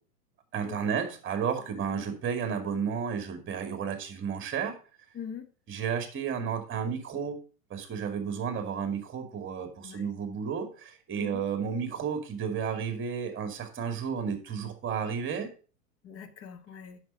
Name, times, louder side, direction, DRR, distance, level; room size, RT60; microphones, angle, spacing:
voice 1, 0.5-4.7 5.7-7.4 7.7-15.5, right 7 dB, 25° right, 6 dB, 2.3 m, -32 dB
voice 2, 1.6-2.1 5.1-5.5 9.8-10.0 11.2-11.5 16.0-17.0, left 6 dB, 30° left, 9 dB, 1.3 m, -43 dB
7.7 x 6.4 x 5.4 m, 0.38 s
hypercardioid pair, 115°, 45 cm